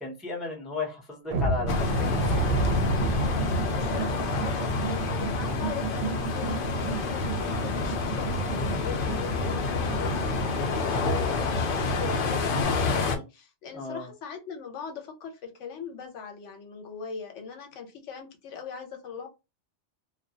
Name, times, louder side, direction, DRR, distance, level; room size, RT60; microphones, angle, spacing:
voice 1, 0.0-2.2 2.5-2.7 5.6-5.9 13.7-14.1, left 3 dB, ahead, -2 dB, 0.4 m, -35 dB
sound 1, 1.3-8.0 8.4-8.5 9.0-9.1 9.6-9.8, right 1 dB, 60° right, 0.7 m, -31 dB
sound 2, 1.7-13.2, left 3 dB, 60° left, 0.6 m, -28 dB
sound 3, 2.9-12.6, right 5 dB, 30° right, 0.9 m, -38 dB
voice 2, 3.7-19.3, left 6 dB, 80° left, 4 dB, 1.0 m, -40 dB
2.3 x 2.1 x 2.7 m, 0.26 s
omnidirectional pair, 1.2 m